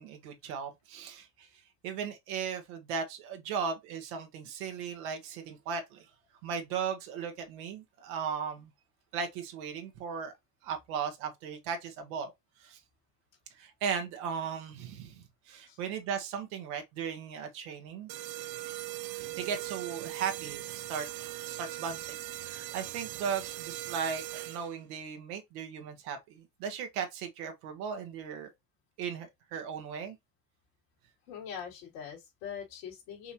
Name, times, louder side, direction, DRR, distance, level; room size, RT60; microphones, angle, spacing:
voice 1, 0.0-1.5 1.8-6.0 6.4-8.7 9.1-10.3 10.6-12.3 12.6-12.8 13.6-18.1 19.1-21.1 21.4-22.2 22.4-28.5 29.0-30.2, right 6 dB, 70° right, 1.5 m, -37 dB
sound 1, 18.1-24.9, right 16 dB, 50° right, 0.6 m, -40 dB
voice 2, 31.3-33.3, left 8 dB, 70° left, 2.8 m, -42 dB
5.6 x 2.7 x 2.9 m
hypercardioid pair, 80°, 46 cm